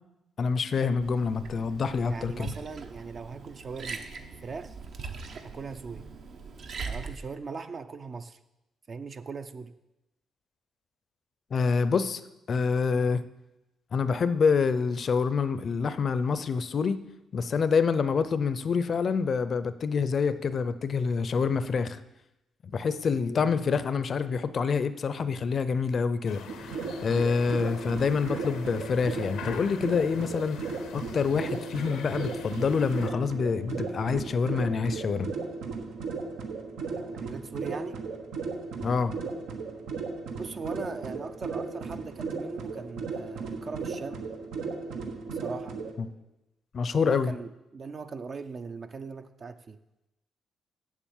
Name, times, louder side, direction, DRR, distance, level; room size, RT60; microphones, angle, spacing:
voice 1, 0.4-2.5 11.5-12.2 12.5-13.2 13.9-17.0 17.3-22.0 22.6-26.7 27.0-30.6 30.9-35.3 38.8-39.1 46.0-46.1 46.7-47.3, left 5 dB, 50° left, 13 dB, 0.6 m, -27 dB
Liquid, 1.0-7.2, right 5 dB, 65° right, 1.0 m, -41 dB
voice 2, 2.1-4.1 4.4-4.8 5.4-6.1 6.9-8.4 8.9-9.8 36.9-38.0 40.4-44.2 45.3-45.8 47.0-49.8, right 4 dB, 45° right, 8 dB, 0.5 m, -39 dB
sound 1, 26.3-33.1, left 7 dB, 85° left, 0.8 m, -44 dB
sound 2, 26.5-45.9, right 4 dB, 90° right, 1.3 m, -36 dB
7.8 x 7.3 x 7.2 m, 0.95 s
cardioid pair, 90°, 0 cm